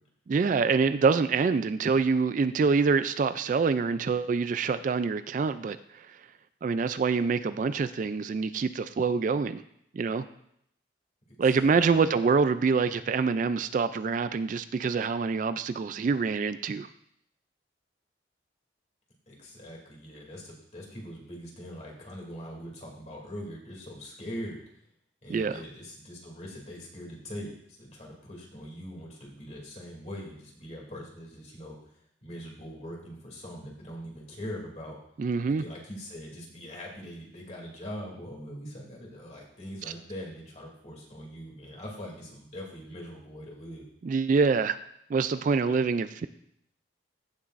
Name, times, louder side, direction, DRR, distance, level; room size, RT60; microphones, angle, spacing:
voice 1, 0.3-6.1 6.6-9.6 9.9-10.2 11.4-16.9 25.3-25.6 35.2-35.6 44.0-44.8 45.1-46.3, right 5 dB, 45° right, 13 dB, 0.3 m, -26 dB
voice 2, 11.3-12.0 19.3-24.6 25.2-31.8 32.2-35.0 35.5-43.8, equal, 40° left, -2 dB, 2.7 m, -42 dB
15.5 x 7.1 x 2.5 m, 0.72 s
head